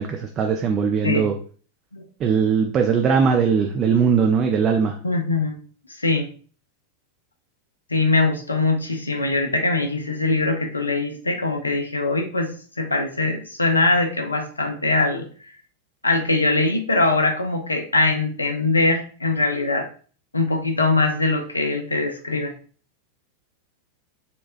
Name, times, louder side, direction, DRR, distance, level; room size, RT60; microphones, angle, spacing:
voice 1, 0.0-1.3 2.2-5.0, right 6 dB, 30° right, 3 dB, 0.3 m, -20 dB
voice 2, 5.0-5.6 6.0-6.3 7.9-12.5 12.8-15.2 16.0-19.9 20.3-22.5, left 3 dB, 80° left, 4 dB, 0.4 m, -22 dB
4.1 x 2.2 x 2.4 m, 0.41 s
figure-of-eight pair, 90°, 0 cm